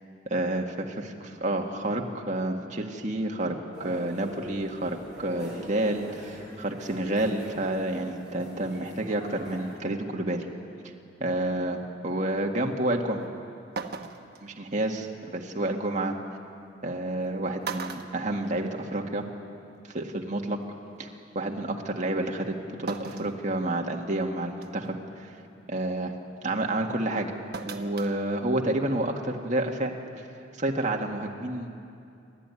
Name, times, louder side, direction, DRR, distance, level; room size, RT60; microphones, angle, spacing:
voice 1, 0.3-0.9 1.4-10.4 11.2-13.2 14.4-16.2 16.8-19.2 19.9-20.6 21.0-21.1 21.4-25.0 25.2-25.3 25.7-26.1 26.4-27.3 27.7-29.9 30.6-31.7, right 1 dB, 40° right, 1 dB, 1.9 m, -29 dB
sound 1, 3.7-9.7, equal, 5° right, 7.6 m, -44 dB
sound 2, 13.2-13.3 13.8-14.4 16.0-16.1 17.1-17.3 17.6-19.0 19.4-19.5 20.7-20.8 22.9-23.4 23.9-24.0 24.6-24.9 27.5-28.1 28.5-28.6, right 5 dB, 55° right, 1.2 m, -37 dB
29.0 x 12.5 x 9.8 m, 2.5 s
head